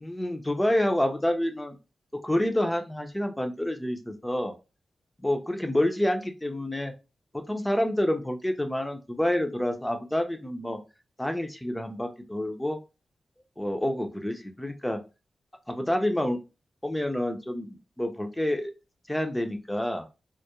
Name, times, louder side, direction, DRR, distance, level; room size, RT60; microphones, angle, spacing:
voice 1, 0.0-1.8 2.2-4.5 5.2-6.9 7.3-10.8 11.2-12.8 13.6-15.0 15.7-16.4 16.8-18.7 19.1-20.1, left 1 dB, 10° left, 5 dB, 0.5 m, -28 dB
2.2 x 2.0 x 2.8 m, 0.29 s
cardioid pair, 75°, 0 cm